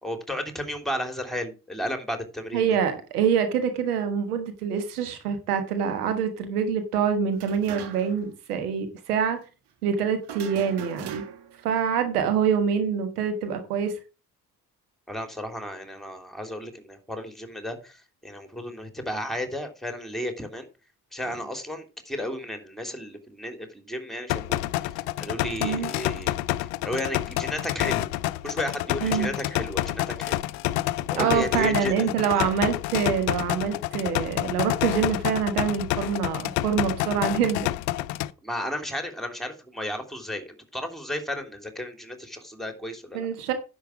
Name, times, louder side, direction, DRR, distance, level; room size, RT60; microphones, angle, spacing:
voice 1, 0.0-2.6 15.1-20.7 21.1-24.7 25.2-26.4 26.8-28.1 28.4-30.4 31.1-32.4 38.4-43.3, equal, ahead, 5 dB, 3.1 m, -33 dB
voice 2, 2.5-9.4 9.8-11.2 11.6-13.9 25.6-25.9 29.0-29.3 31.1-37.7 43.1-43.5, right 7 dB, 80° right, 8 dB, 1.5 m, -25 dB
sound 1, 7.3-8.3 8.5-8.6 10.2-11.6, right 8 dB, 60° right, 1.7 m, -38 dB
sound 2, 24.3-38.3, left 16 dB, 70° left, 0.6 m, -28 dB
10.5 x 7.2 x 4.9 m, 0.31 s
figure-of-eight pair, 40°, 45 cm